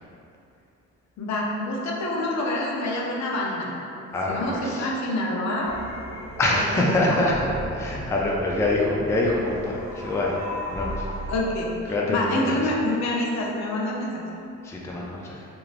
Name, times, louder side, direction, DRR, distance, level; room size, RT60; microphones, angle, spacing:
voice 1, 1.2-3.7 4.0-5.7 6.5-6.6 7.1-7.3 11.3-11.7 12.1-14.2, left 1 dB, 65° left, -3 dB, 0.6 m, -27 dB
voice 2, 4.1-4.9 6.4-7.4 7.7-10.4 10.7-11.1 11.9-12.6 14.6-15.5, left 1 dB, 10° left, -3 dB, 0.3 m, -25 dB
sound 1, 5.6-11.4, equal, 10° right, 1.1 m, -37 dB
3.1 x 2.6 x 2.5 m, 2.7 s
cardioid pair, 90°, 30 cm